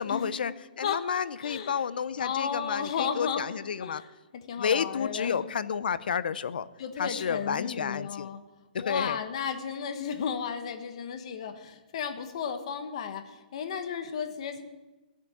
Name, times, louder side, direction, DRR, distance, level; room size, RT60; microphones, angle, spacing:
voice 1, 0.0-4.0 4.6-6.7 7.0-8.3 8.7-9.2, left 7 dB, 70° left, 17 dB, 0.6 m, -31 dB
voice 2, 1.4-1.8 2.2-3.4 3.8-4.0 4.5-5.4 6.8-8.4 8.8-14.6, left 7 dB, 40° left, 8 dB, 1.1 m, -33 dB
14.5 x 8.4 x 7.3 m, 1.1 s
hypercardioid pair, 175°, 5 cm